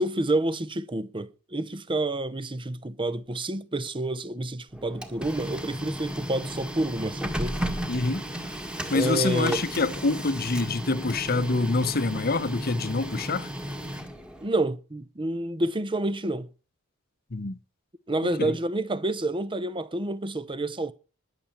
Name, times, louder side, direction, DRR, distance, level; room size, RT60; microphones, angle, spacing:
voice 1, 0.0-7.6 8.9-9.6 14.4-16.5 18.1-20.9, right 1 dB, 25° right, 0.8 m, -28 dB
Printer, 4.7-14.5, equal, 5° right, 1.7 m, -34 dB
voice 2, 7.9-8.3 8.9-13.5 17.3-17.6 18.4-18.6, left 3 dB, 50° left, 0.9 m, -26 dB
20.5 x 7.0 x 4.4 m
head